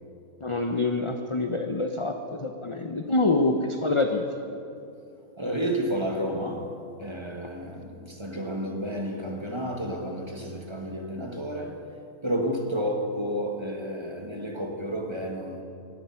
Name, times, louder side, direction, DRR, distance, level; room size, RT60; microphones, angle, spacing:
voice 1, 0.4-4.2, left 2 dB, 30° left, 0.7 m, -26 dB
voice 2, 5.4-11.9 12.2-15.6, equal, 20° right, 1.6 m, -31 dB
18.5 x 13.5 x 5.9 m
omnidirectional pair, 1.6 m